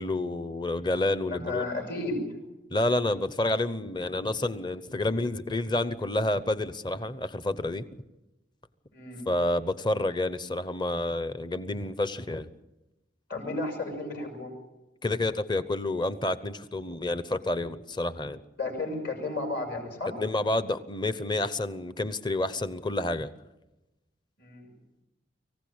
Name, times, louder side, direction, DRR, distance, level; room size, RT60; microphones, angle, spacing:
voice 1, 0.0-1.6 2.7-7.8 9.3-12.5 15.0-18.4 20.2-23.3, left 2 dB, 25° left, 14 dB, 0.8 m, -29 dB
voice 2, 1.3-2.2 8.9-9.2 13.3-14.5 18.6-20.1 24.4-24.7, left 2 dB, 50° left, 3 dB, 6.3 m, -33 dB
25.0 x 15.5 x 8.7 m, 1.0 s
head